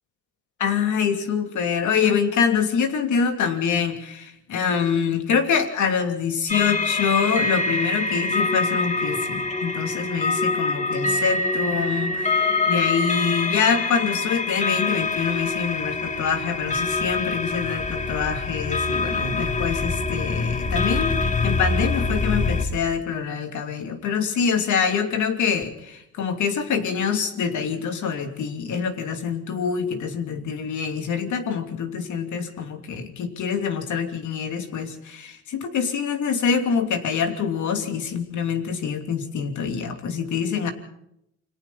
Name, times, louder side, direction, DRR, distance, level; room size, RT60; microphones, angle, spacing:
voice 1, 0.6-40.7, left 6 dB, 75° left, 6 dB, 3.0 m, -25 dB
sound 1, 6.5-22.7, left 3 dB, 25° left, 3.0 m, -25 dB
29.0 x 22.5 x 4.2 m, 0.79 s
cardioid pair, 90°, 30 cm